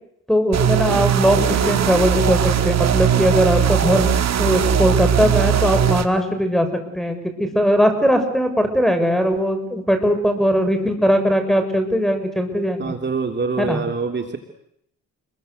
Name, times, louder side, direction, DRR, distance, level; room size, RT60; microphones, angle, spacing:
voice 1, 0.3-4.0 4.4-6.7 7.0-12.9 13.6-13.8, equal, ahead, 7 dB, 7.1 m, -19 dB
sound 1, 0.5-6.0, right 9 dB, 60° right, 2.7 m, -19 dB
voice 2, 12.8-14.4, right 4 dB, 35° right, 5 dB, 3.0 m, -25 dB
30.0 x 22.5 x 8.3 m, 0.75 s
cardioid pair, 90°, 30 cm